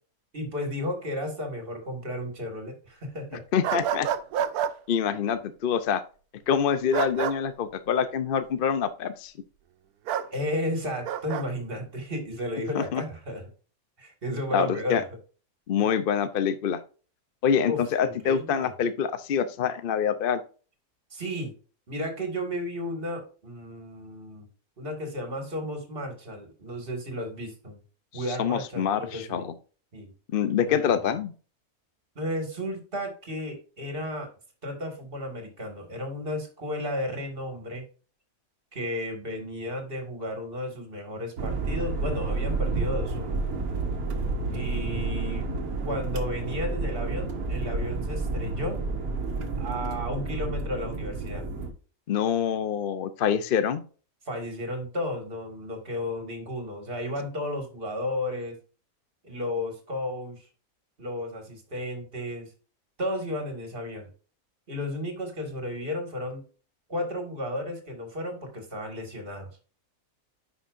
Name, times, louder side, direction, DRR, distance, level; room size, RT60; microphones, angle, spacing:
voice 1, 0.3-3.4 10.3-13.4 14.0-15.0 15.8-15.9 17.7-18.7 21.1-21.5 21.9-24.5 24.8-27.8 28.1-29.4 29.9-30.1 30.7-31.1 32.2-34.3 34.6-37.8 38.7-43.4 44.5-45.5 45.8-48.8 49.6-51.5 54.3-58.6 59.2-60.5 61.0-62.5 63.0-64.1 64.7-66.4 66.9-69.5, left 1 dB, 40° right, 4 dB, 2.3 m, -33 dB
voice 2, 3.5-4.1 4.9-6.0 6.5-9.3 12.7-13.0 14.5-15.0 15.7-16.8 17.4-20.4 28.1-29.5 30.3-31.3 52.1-53.8, left 7 dB, 60° left, 12 dB, 0.6 m, -26 dB
sound 1, 3.6-4.7 6.9-7.4 10.1-10.3 11.1-11.4, right 9 dB, 90° right, 1.1 m, -28 dB
sound 2, 41.4-51.7, right 3 dB, 75° right, 1.6 m, -30 dB
9.9 x 5.6 x 2.6 m, 0.37 s
omnidirectional pair, 1.6 m